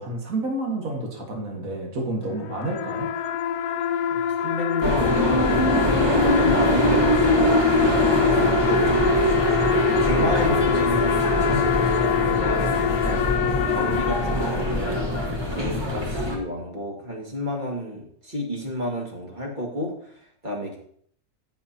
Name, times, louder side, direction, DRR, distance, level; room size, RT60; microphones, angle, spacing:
voice 1, 0.0-3.1 8.4-8.6, right 2 dB, 65° right, 0 dB, 2.2 m, -30 dB
sound 1, 2.3-15.0, left 10 dB, 85° left, 1.1 m, -26 dB
voice 2, 4.1-7.9 8.3-9.6 10.0-15.1 15.5-20.1 20.4-20.8, left 1 dB, 35° right, -1 dB, 2.1 m, -31 dB
sound 2, 4.8-16.4, equal, 20° right, 1.6 m, -22 dB
14.5 x 6.4 x 2.9 m, 0.63 s
omnidirectional pair, 1.5 m